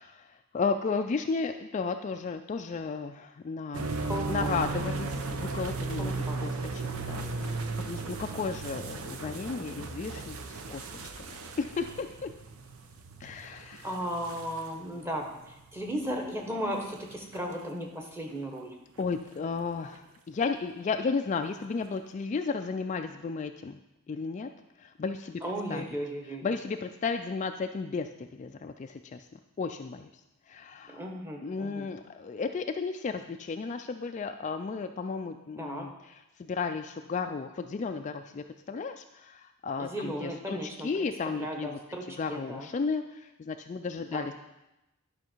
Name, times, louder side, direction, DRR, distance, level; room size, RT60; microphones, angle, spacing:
voice 1, 0.0-3.9 4.3-7.6 7.9-10.4 10.7-10.9 11.6-12.3 13.2-13.9 19.0-23.8 24.1-24.5 24.8-25.4 25.7-25.8 26.4-30.1 30.5-31.0 31.4-41.8 42.2-44.3, left 4 dB, 35° left, 7 dB, 0.3 m, -34 dB
sound 1, 3.7-17.5 18.3-18.4 19.0-19.6 19.9-20.0 21.8-21.9, right 3 dB, 90° right, 0.8 m, -36 dB
voice 2, 4.0-4.7 6.0-6.4 13.8-18.7 25.4-26.6 30.9-31.9 35.6-35.9 39.8-42.0 42.3-42.7 44.1-44.3, equal, 10° right, 1 dB, 1.3 m, -36 dB
11.0 x 5.7 x 4.5 m, 0.94 s
head